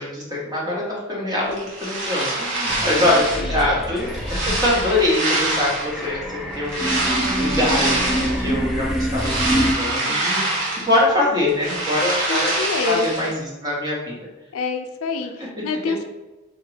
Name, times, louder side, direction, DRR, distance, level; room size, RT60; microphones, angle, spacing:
voice 1, 0.0-7.1 7.4-12.5 12.8-14.1 15.4-15.5, left 1 dB, 20° right, -4 dB, 1.2 m, -24 dB
sound 1, 1.5-3.5 4.0-6.1 6.7-8.5 8.9-11.1 11.4-13.3, right 2 dB, 60° right, 1.3 m, -25 dB
sound 2, 2.7-9.7, equal, ahead, 0.4 m, -26 dB
voice 2, 2.9-3.7 9.5-9.7 10.0-10.3 12.3-13.3 14.5-16.0, left 4 dB, 85° left, 7 dB, 0.4 m, -28 dB
3.8 x 2.8 x 4.8 m, 1.1 s
head